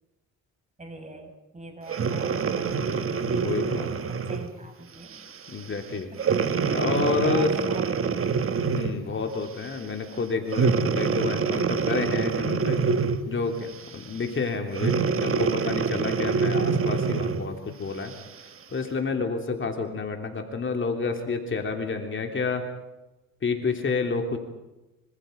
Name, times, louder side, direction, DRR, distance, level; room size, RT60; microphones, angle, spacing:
voice 1, 0.8-2.8 4.1-5.2 5.9-6.4 7.1-8.5, right 2 dB, 25° right, 4 dB, 6.3 m, -42 dB
Breathing, 1.9-4.5 5.1-5.4 6.2-9.1 10.5-13.4 14.7-17.5 18.1-18.2, right 5 dB, 45° right, 1.8 m, -25 dB
voice 2, 3.4-3.9 5.5-6.1 6.7-7.5 8.8-12.8 13.3-18.1 18.7-22.6 23.4-24.4, left 4 dB, 40° left, 4 dB, 3.3 m, -29 dB
26.0 x 25.5 x 5.3 m, 1.0 s
cardioid pair, 90°, 30 cm